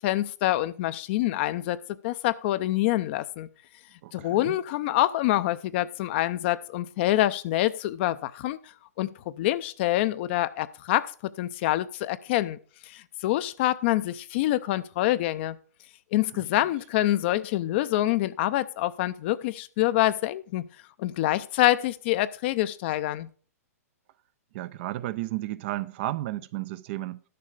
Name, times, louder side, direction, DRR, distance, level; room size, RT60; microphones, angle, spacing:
voice 1, 0.0-1.8 2.0-3.5 4.1-8.7 9.0-9.1 9.4-12.6 12.8-15.6 16.1-20.7 21.0-23.3, left 15 dB, 45° left, 0.6 m, -26 dB
voice 2, 4.0-4.6 16.3-16.4 24.5-27.2, right 16 dB, 45° right, 0.5 m, -33 dB
11.5 x 6.8 x 5.0 m
figure-of-eight pair, 115°, 9 cm